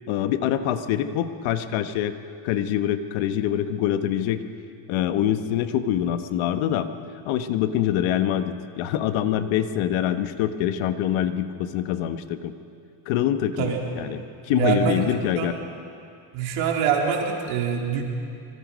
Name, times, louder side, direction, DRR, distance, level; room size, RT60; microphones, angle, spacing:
voice 1, 0.1-2.1 2.4-4.4 4.9-6.9 7.2-12.5 13.1-15.5, left 11 dB, 85° left, 9 dB, 1.4 m, -25 dB
voice 2, 14.5-15.0 15.4-15.5 16.3-18.0, right 7 dB, 85° right, 0 dB, 3.9 m, -24 dB
25.5 x 25.5 x 5.3 m, 2.4 s
cardioid pair, 125°, 46 cm